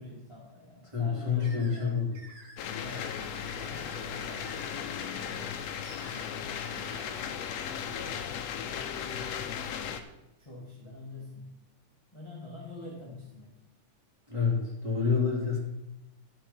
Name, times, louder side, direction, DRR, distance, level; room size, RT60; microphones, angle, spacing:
voice 1, 0.0-2.0 2.6-3.1 3.6-5.6 6.0-9.9 10.4-11.5 12.1-13.5, left 2 dB, 15° left, -4 dB, 1.3 m, -47 dB
voice 2, 0.9-2.1 14.3-15.6, left 6 dB, 10° right, -5 dB, 2.8 m, -28 dB
sound 1, 1.4-7.3, right 2 dB, 70° right, 3.2 m, -51 dB
sound 2, 2.6-10.0, left 8 dB, 70° left, 1.6 m, -36 dB
12.0 x 6.4 x 5.7 m, 0.92 s
omnidirectional pair, 3.6 m